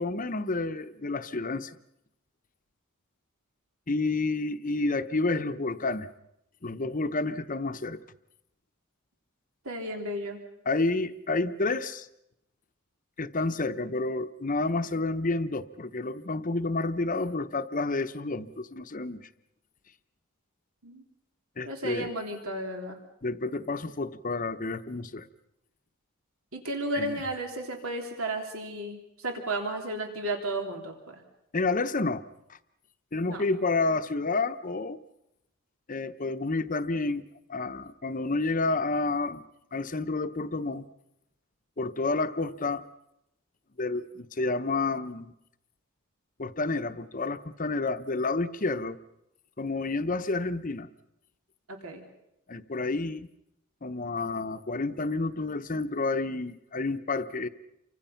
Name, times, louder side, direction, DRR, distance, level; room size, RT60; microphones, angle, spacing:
voice 1, 0.0-1.8 3.9-6.1 6.6-8.0 10.7-12.1 13.2-19.3 21.6-22.1 23.2-25.3 26.9-27.2 31.5-32.2 32.5-32.6 33.1-35.0 35.9-39.4 39.7-40.9 41.8-42.8 43.8-45.3 46.4-49.0 49.6-50.9 52.5-53.3 53.8-57.5, left 3 dB, 40° left, 10 dB, 0.9 m, -30 dB
voice 2, 9.6-10.4 20.8-21.0 21.6-23.0 26.5-31.2 33.2-33.4 51.7-52.0, right 1 dB, 80° right, 3 dB, 3.3 m, -33 dB
29.0 x 24.5 x 5.8 m, 0.84 s
head